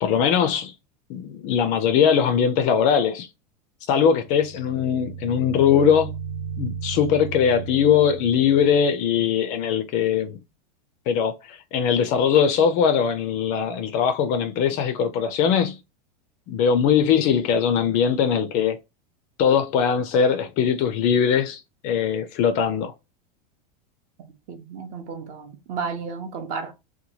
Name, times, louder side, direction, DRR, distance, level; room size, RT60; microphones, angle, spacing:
voice 1, 0.0-0.7 1.1-3.3 3.9-6.1 6.6-10.4 11.1-15.8 16.5-18.8 19.4-22.9, left 7 dB, 35° left, 0.4 m, -21 dB
sound 1, 4.2-8.9, right 6 dB, 75° right, 0.8 m, -35 dB
voice 2, 24.5-26.7, right 5 dB, 35° right, 0.6 m, -33 dB
2.9 x 2.2 x 2.7 m
supercardioid pair, 155°, 21 cm